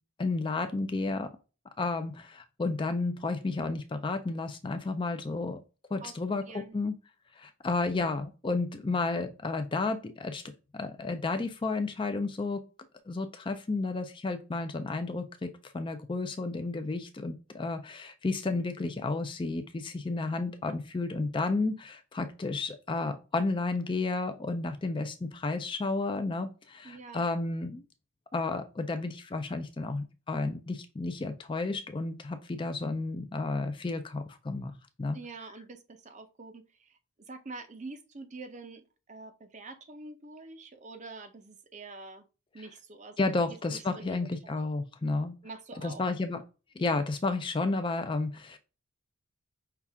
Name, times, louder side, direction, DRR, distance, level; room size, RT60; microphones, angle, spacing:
voice 1, 0.2-1.3 1.8-5.6 5.9-7.0 7.4-10.4 10.7-12.6 13.1-27.8 28.3-35.2 43.2-45.4 45.8-46.4 46.8-48.6, left 3 dB, 20° left, 8 dB, 0.4 m, -32 dB
voice 2, 6.5-6.8 26.8-27.3 35.1-37.0 37.3-42.3 42.5-43.2 43.7-44.5 45.4-46.0, right 3 dB, 35° right, 8 dB, 0.6 m, -46 dB
5.7 x 2.4 x 3.5 m, 0.31 s
head